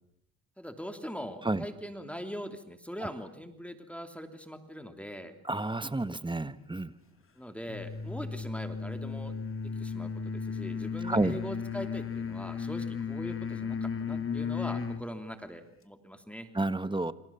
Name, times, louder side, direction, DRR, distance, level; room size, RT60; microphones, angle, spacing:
voice 1, 0.6-5.3 7.4-9.4 9.8-16.5, equal, 5° left, 7 dB, 3.0 m, -41 dB
voice 2, 5.5-6.9 11.0-11.4 16.5-17.1, right 2 dB, 15° right, 13 dB, 1.5 m, -30 dB
sound 1, 7.7-15.1, left 5 dB, 35° left, 2.5 m, -35 dB
28.0 x 26.0 x 7.2 m, 0.75 s
cardioid pair, 80°, 36 cm